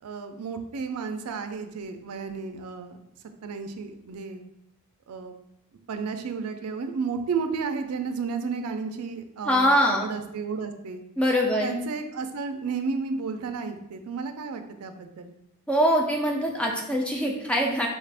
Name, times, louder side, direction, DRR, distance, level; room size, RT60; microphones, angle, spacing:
voice 1, 0.0-3.0 3.4-4.4 5.1-5.3 5.9-11.0 11.6-15.3, right 5 dB, 80° right, 7 dB, 0.4 m, -32 dB
voice 2, 9.5-10.0 11.2-11.8 15.7-17.9, equal, 5° left, 0 dB, 0.4 m, -23 dB
4.1 x 2.4 x 3.4 m, 0.80 s
head